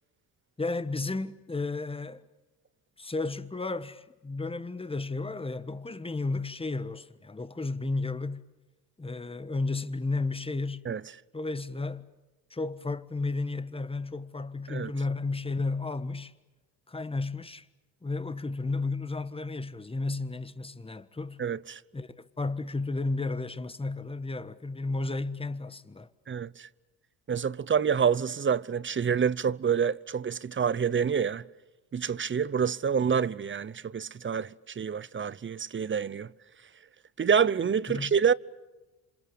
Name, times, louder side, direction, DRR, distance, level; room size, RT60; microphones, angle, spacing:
voice 1, 0.6-2.2 3.0-8.4 9.0-10.8 11.3-12.1 12.5-16.3 16.9-17.6 18.0-21.4 21.9-26.1 37.9-38.1, left 3 dB, 15° left, 1.4 m, -33 dB
voice 2, 21.4-21.8 26.3-26.7 27.3-31.5 31.9-36.3 37.2-38.3, right 7 dB, 30° right, 0.8 m, -27 dB
27.5 x 27.0 x 7.0 m
supercardioid pair, 75°, 40 cm